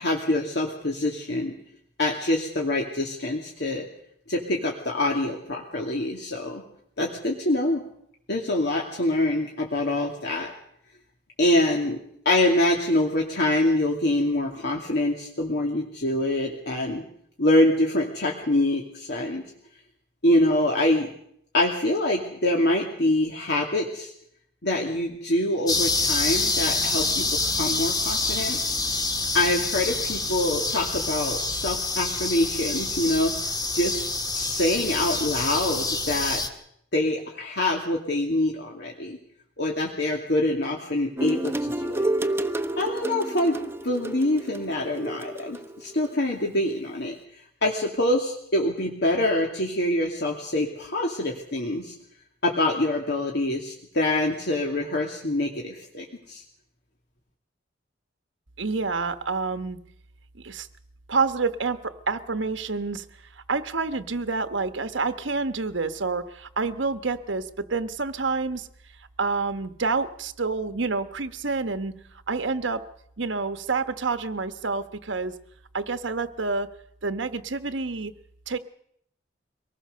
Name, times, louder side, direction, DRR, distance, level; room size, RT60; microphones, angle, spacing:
voice 1, 0.0-1.6 2.0-3.9 4.3-6.6 7.0-7.8 8.3-10.5 11.4-12.0 12.2-17.0 17.4-19.4 20.2-21.1 21.5-24.1 24.6-28.6 29.3-34.1 34.3-36.4 36.9-39.2 39.6-42.1 42.8-43.6 43.8-47.2 47.6-51.9 52.4-56.4, left 1 dB, 60° left, 0 dB, 2.6 m, -25 dB
sound 1, 25.7-36.5, left 3 dB, 20° left, 1.9 m, -27 dB
sound 2, 41.2-46.1, right 1 dB, 10° right, 0.8 m, -30 dB
voice 2, 58.6-59.8 60.4-60.7 61.1-63.0 63.3-68.7 69.2-71.9 72.3-72.9 73.2-75.3 75.7-76.7 77.0-78.1 78.5-78.6, right 4 dB, 75° right, 10 dB, 1.2 m, -28 dB
23.5 x 19.5 x 6.7 m, 0.71 s
head